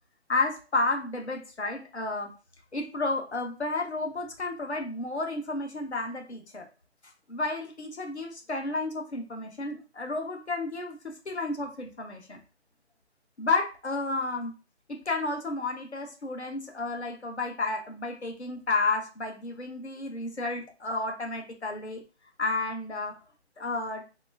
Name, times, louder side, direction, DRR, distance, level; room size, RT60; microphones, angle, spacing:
voice 1, 0.3-2.3 2.7-6.7 7.3-12.4 13.4-14.5 14.9-22.0 22.4-23.2 23.6-24.0, left 3 dB, 75° left, 3 dB, 1.1 m, -31 dB
3.2 x 2.9 x 3.4 m, 0.33 s
figure-of-eight pair, 150°, 34 cm